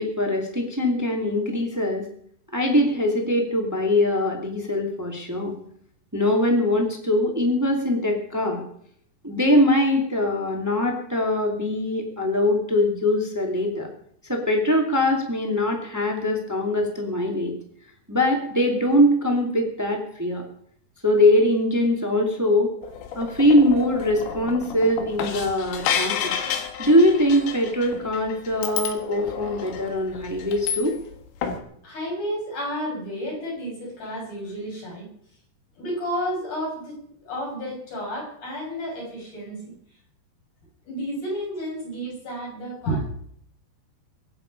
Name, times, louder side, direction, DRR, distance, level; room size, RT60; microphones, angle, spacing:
voice 1, 0.0-2.0 2.5-5.5 6.1-8.6 9.2-13.9 14.3-17.5 18.1-20.4 21.0-22.7 23.1-26.3 26.8-30.9, left 1 dB, 5° right, 2 dB, 1.2 m, -22 dB
sound 1, 22.8-31.2 31.4-31.6, left 7 dB, 85° left, 3.8 m, -31 dB
voice 2, 31.8-35.1 35.8-39.7 40.9-43.0, equal, 45° left, -2 dB, 7.7 m, -31 dB
23.5 x 8.9 x 5.4 m, 0.66 s
omnidirectional pair, 5.0 m